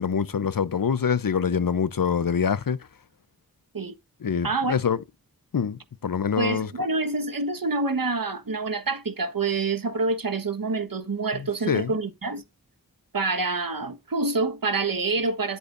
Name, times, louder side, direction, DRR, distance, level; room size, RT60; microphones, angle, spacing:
voice 1, 0.0-2.9 4.2-5.0 5.5-6.7 11.3-12.0, left 6 dB, 65° left, 0.7 m, -25 dB
voice 2, 4.4-4.7 6.4-12.4 13.1-15.6, right 3 dB, 65° right, 1.5 m, -27 dB
10.5 x 8.3 x 2.6 m
wide cardioid pair, 45°, 36 cm